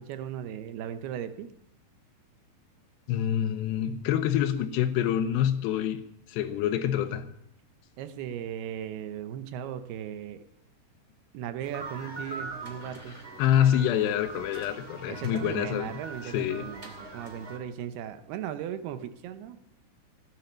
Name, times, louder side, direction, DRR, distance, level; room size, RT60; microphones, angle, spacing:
voice 1, 0.0-1.5 8.0-10.4 11.3-13.2 15.1-19.6, right 9 dB, 75° right, 2.7 m, -37 dB
voice 2, 3.1-6.0 6.3-7.3 13.4-15.9 16.2-16.7, left 10 dB, 90° left, 3.1 m, -26 dB
sound 1, 11.6-17.6, right 3 dB, 20° right, 2.0 m, -42 dB
16.0 x 9.2 x 7.2 m
omnidirectional pair, 4.8 m